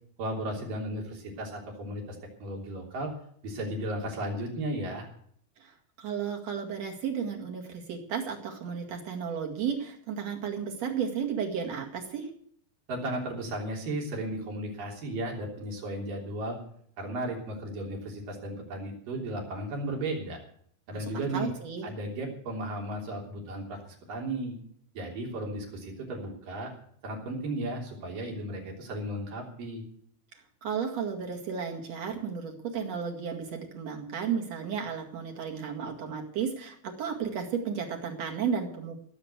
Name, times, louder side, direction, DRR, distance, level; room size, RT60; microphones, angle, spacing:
voice 1, 0.2-3.1 3.4-5.1 12.9-16.6 17.0-20.4 20.9-21.5 21.8-23.8 24.1-24.6 24.9-26.7 27.0-29.8, right 1 dB, 65° right, 0 dB, 4.9 m, -35 dB
voice 2, 6.0-12.3 20.9-21.9 30.6-39.0, right 7 dB, 50° right, 2 dB, 3.0 m, -33 dB
17.5 x 7.7 x 8.1 m, 0.63 s
omnidirectional pair, 4.2 m